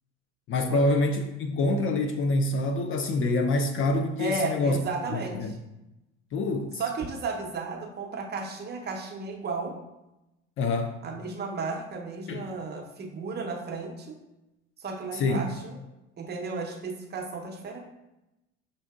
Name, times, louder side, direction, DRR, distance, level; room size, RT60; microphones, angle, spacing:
voice 1, 0.5-4.8 5.1-5.5 6.3-6.8 10.6-11.0 12.3-12.5 15.1-15.5, left 2 dB, 40° left, 6 dB, 0.4 m, -26 dB
voice 2, 4.2-5.5 6.8-9.7 11.0-14.2 14.8-15.8 16.2-17.8, right 4 dB, 30° right, 1 dB, 0.7 m, -34 dB
6.5 x 2.5 x 2.3 m, 0.95 s
hypercardioid pair, 85°, 33 cm